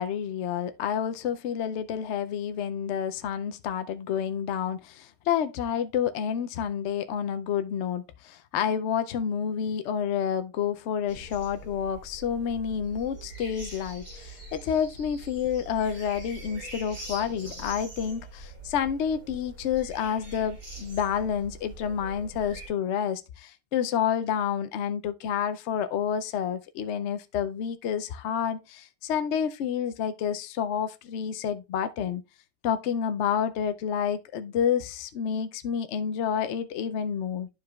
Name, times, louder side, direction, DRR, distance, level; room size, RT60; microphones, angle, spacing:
voice 1, 0.0-32.2 32.6-37.5, left 8 dB, 65° left, 0.7 m, -29 dB
sound 1, 11.1-22.7, right 2 dB, 65° right, 4.2 m, -43 dB
11.5 x 4.8 x 2.3 m
omnidirectional pair, 1.5 m